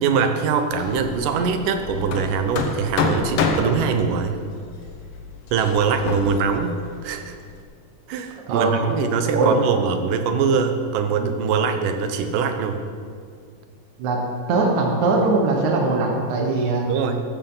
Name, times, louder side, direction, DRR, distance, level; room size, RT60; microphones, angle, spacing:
voice 1, 0.0-4.4 5.5-7.4 8.1-12.8 16.9-17.2, right 6 dB, 85° right, 7 dB, 2.5 m, -22 dB
Hammer, 0.7-7.6, left 4 dB, 65° left, 1.4 m, -28 dB
voice 2, 8.5-8.8 9.3-9.5 14.0-14.2 14.5-16.9, right 3 dB, 65° right, 0 dB, 2.7 m, -20 dB
14.5 x 13.5 x 4.0 m, 2.1 s
omnidirectional pair, 3.7 m